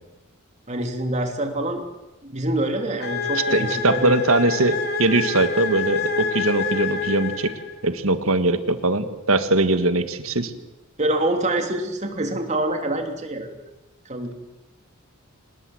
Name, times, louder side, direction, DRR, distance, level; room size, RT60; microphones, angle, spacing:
voice 1, 0.7-1.8 2.2-4.1 11.0-13.6 14.0-14.3, right 1 dB, 35° right, 4 dB, 3.1 m, -26 dB
sound 1, 3.0-7.9, left 5 dB, 50° left, 2.6 m, -27 dB
voice 2, 3.5-7.5 7.8-10.5, right 2 dB, 75° right, 10 dB, 1.7 m, -21 dB
25.5 x 20.0 x 7.9 m, 1.0 s
head